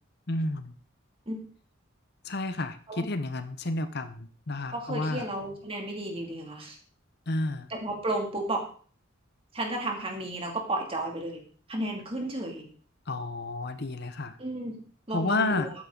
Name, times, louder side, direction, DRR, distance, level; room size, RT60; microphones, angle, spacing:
voice 1, 0.3-0.7 2.2-5.3 7.3-7.7 13.1-14.4 15.1-15.7, left 2 dB, 55° left, 10 dB, 0.9 m, -31 dB
voice 2, 4.7-6.8 7.7-8.6 9.5-11.4 11.7-12.7 14.4-14.8 15.1-15.7, right 1 dB, 30° right, 2 dB, 2.6 m, -33 dB
13.0 x 9.5 x 3.9 m, 0.43 s
head